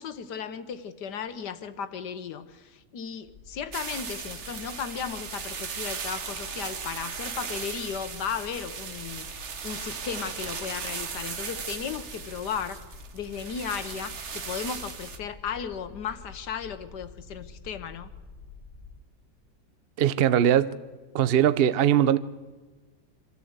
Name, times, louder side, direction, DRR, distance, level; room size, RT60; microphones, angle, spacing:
voice 1, 0.0-9.3 9.6-12.8 13.1-18.1, left 7 dB, 70° left, 1.5 m, -35 dB
sound 1, 3.3-19.0, left 5 dB, 35° left, 1.2 m, -48 dB
sound 2, 3.7-15.2, right 6 dB, 45° right, 1.2 m, -37 dB
voice 2, 20.0-20.8 21.1-22.2, right 10 dB, 70° right, 0.5 m, -21 dB
25.5 x 13.5 x 8.0 m
omnidirectional pair, 1.9 m